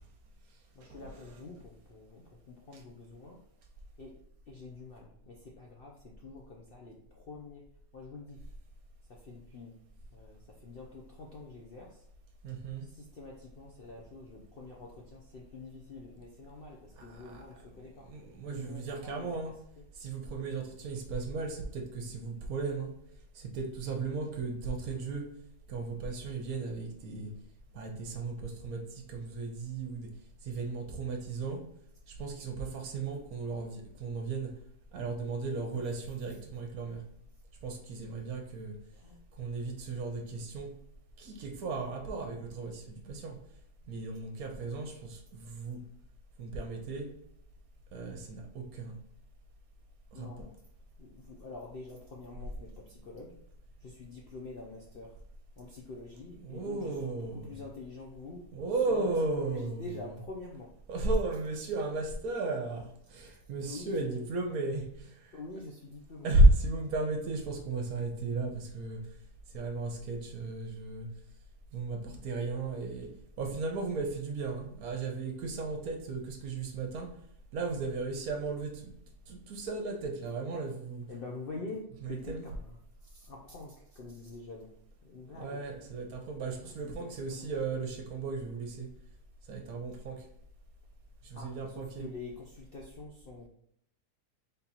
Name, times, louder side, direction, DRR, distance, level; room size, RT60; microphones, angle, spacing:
voice 1, 0.7-3.4 4.0-4.1 4.5-7.6 7.9-8.4 9.1-9.7 10.1-12.0 12.8-18.1 18.5-19.9 38.9-39.2 50.1-50.5 51.0-53.4 53.8-55.2 55.6-60.7 63.7-64.3 65.3-66.5 81.1-84.7 85.0-85.6 86.5-87.5 91.3-93.5, left 3 dB, 60° left, -2 dB, 0.6 m, -46 dB
voice 2, 12.4-12.9 17.3-17.4 18.1-19.5 20.0-22.9 23.4-25.3 25.7-27.3 27.7-28.8 29.1-30.1 30.4-31.6 32.2-34.5 34.9-37.0 37.6-38.7 39.4-40.7 41.2-43.4 43.9-45.8 46.4-47.1 47.9-48.9 50.2-50.5 56.5-57.6 58.5-59.8 60.9-64.9 66.2-69.0 69.5-71.1 71.7-73.1 73.4-77.1 77.5-78.9 79.3-81.0 82.3-82.4 85.3-88.9 89.5-90.2 91.2-92.0, right 2 dB, 65° right, 3 dB, 1.1 m, -34 dB
3.7 x 2.9 x 3.9 m, 0.71 s
omnidirectional pair, 1.7 m